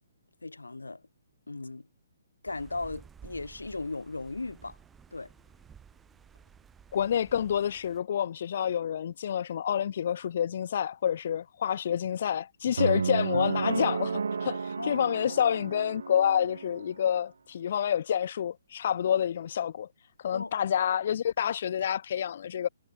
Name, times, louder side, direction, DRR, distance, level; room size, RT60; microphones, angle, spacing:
voice 1, 0.4-1.0 1.5-1.9 2.4-4.8 5.1-5.3 14.8-15.6 20.3-20.5, left 3 dB, 80° left, 1.9 m, -37 dB
sound 1, 2.5-8.0, right 7 dB, 10° right, 6.6 m, -54 dB
voice 2, 6.9-19.9 20.2-22.7, left 9 dB, 50° left, 0.4 m, -28 dB
sound 2, 12.8-16.9, right 5 dB, 70° right, 0.6 m, -32 dB
figure-of-eight pair, 130°, 0 cm